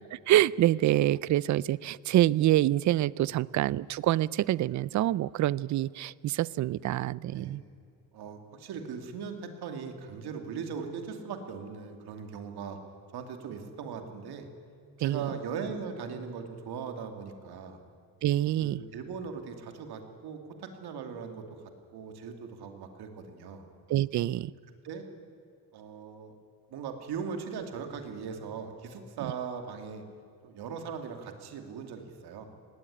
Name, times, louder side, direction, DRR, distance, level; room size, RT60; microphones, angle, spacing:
voice 1, 0.1-7.6 15.0-15.3 18.2-18.8 23.9-24.5, right 14 dB, 45° right, 22 dB, 0.4 m, -26 dB
voice 2, 8.1-12.8 13.1-14.5 15.0-17.8 18.6-23.7 24.8-25.1 25.7-26.4 26.7-30.0 30.4-32.5, right 6 dB, 70° right, 5 dB, 2.7 m, -39 dB
19.0 x 17.0 x 10.0 m, 2.3 s
cardioid pair, 145°, 40 cm